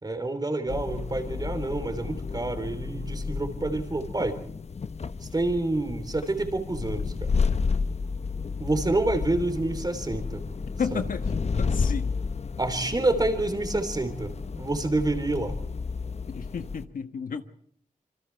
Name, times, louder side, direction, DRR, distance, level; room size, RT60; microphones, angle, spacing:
voice 1, 0.0-4.4 5.2-7.3 8.6-10.5 10.9-11.1 12.6-15.6, right 2 dB, 30° right, 8 dB, 3.5 m, -28 dB
sound 1, 0.7-16.8, left 5 dB, 50° left, 1.0 m, -31 dB
voice 2, 10.8-12.1 16.3-17.4, left 6 dB, 75° left, 8 dB, 1.4 m, -33 dB
27.0 x 25.0 x 4.6 m, 0.66 s
wide cardioid pair, 85°, 14 cm